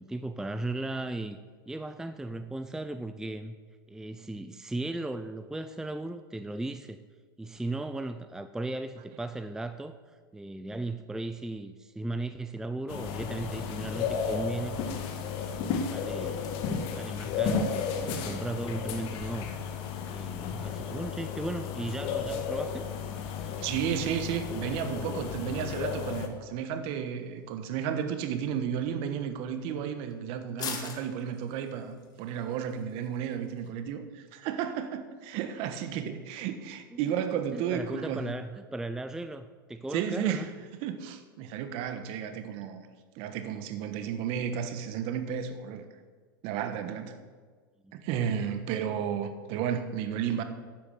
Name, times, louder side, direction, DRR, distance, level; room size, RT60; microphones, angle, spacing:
voice 1, 0.0-1.4 1.7-3.6 3.9-7.0 7.4-15.2 15.9-16.5 17.0-19.5 20.0-22.9 36.9-37.0 37.5-40.5 47.8-47.9, right 2 dB, 5° right, 0.5 m, -36 dB
sound 1, 12.9-26.3, left 6 dB, 50° left, 1.7 m, -33 dB
sound 2, 14.1-33.7, left 6 dB, 35° left, 2.0 m, -50 dB
voice 2, 23.6-38.2 39.9-40.5 40.8-42.9 43.1-45.9 46.4-47.2 47.9-50.4, right 8 dB, 50° right, 1.4 m, -33 dB
11.5 x 9.2 x 6.6 m
hypercardioid pair, 110°, 12 cm